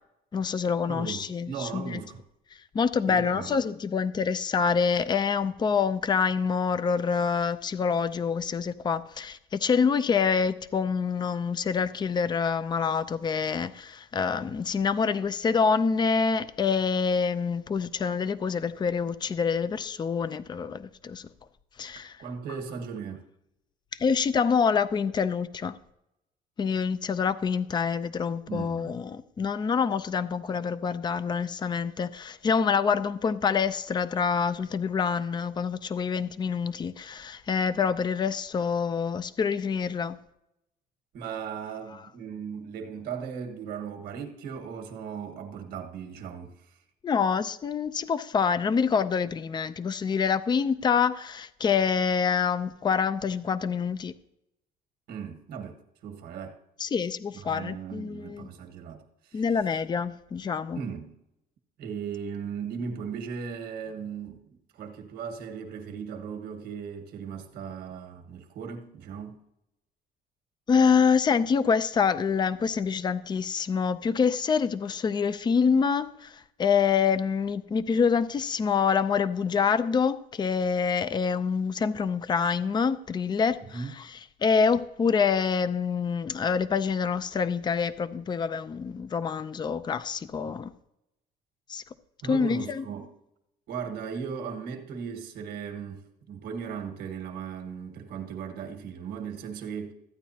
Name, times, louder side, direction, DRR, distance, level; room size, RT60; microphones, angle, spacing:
voice 1, 0.3-2.0 2.7-21.3 21.8-22.1 24.0-25.8 26.6-40.2 47.0-54.1 56.8-58.5 59.3-60.8 70.7-76.3 76.6-83.6 84.4-90.7 91.7-91.8 92.2-92.8, left 6 dB, 25° left, 0.5 m, -26 dB
voice 2, 0.9-2.2 3.1-3.6 22.2-23.2 28.5-28.9 41.1-46.8 55.1-56.6 57.4-59.0 59.2-59.4 60.7-61.2 61.8-69.4 83.7-83.9 92.2-93.1 93.7-99.9, right 6 dB, 75° right, 1.5 m, -37 dB
14.0 x 9.1 x 2.8 m
cardioid pair, 110°, 17 cm